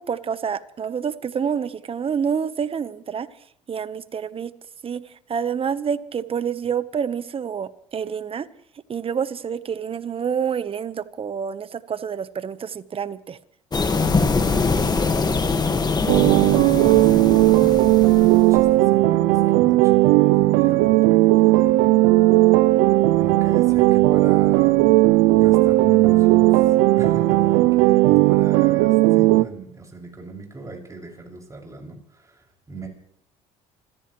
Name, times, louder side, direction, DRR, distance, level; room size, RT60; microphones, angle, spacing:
voice 1, 0.0-3.3 3.7-4.5 4.8-8.5 8.9-13.4, right 7 dB, 40° right, 14 dB, 1.1 m, -28 dB
sound 1, 13.7-18.6, left 4 dB, 25° left, 1.8 m, -23 dB
sound 2, 14.0-29.2, left 6 dB, 85° left, 3.9 m, -43 dB
voice 2, 14.0-15.3 15.7-22.3 22.7-24.8 25.3-32.9, right 3 dB, 20° right, 0 dB, 6.4 m, -39 dB
sound 3, 16.1-29.4, right 19 dB, 85° right, 0.6 m, -16 dB
28.5 x 15.5 x 3.2 m, 0.67 s
supercardioid pair, 80°, 15 cm